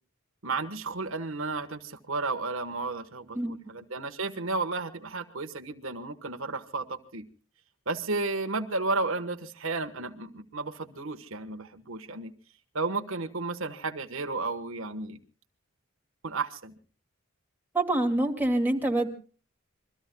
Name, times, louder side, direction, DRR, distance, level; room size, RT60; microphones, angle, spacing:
voice 1, 0.4-7.3 7.9-12.3 12.7-15.2 16.2-16.7, right 3 dB, 75° right, 7 dB, 1.4 m, -33 dB
voice 2, 17.7-19.1, right 1 dB, 10° right, 1 dB, 2.3 m, -25 dB
27.5 x 23.0 x 2.3 m, 0.39 s
head